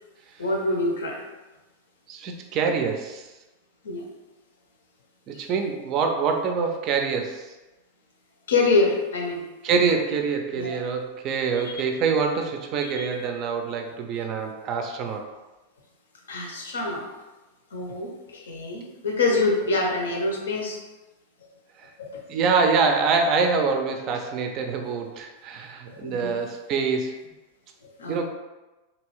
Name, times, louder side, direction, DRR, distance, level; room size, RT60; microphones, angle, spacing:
voice 1, 0.4-1.2 3.8-4.0 5.3-5.4 8.5-9.4 10.5-10.7 11.6-11.7 12.8-13.1 16.3-17.1 17.7-20.8 22.0-22.2 25.9-26.4 27.8-28.2, left 3 dB, 65° left, 1 dB, 0.6 m, -26 dB
voice 2, 2.1-3.3 5.3-7.5 9.6-15.2 21.8-21.9 22.3-27.2 28.1-28.2, right 5 dB, 40° right, 4 dB, 0.4 m, -25 dB
2.8 x 2.6 x 3.0 m, 1.1 s
figure-of-eight pair, 90°, 0 cm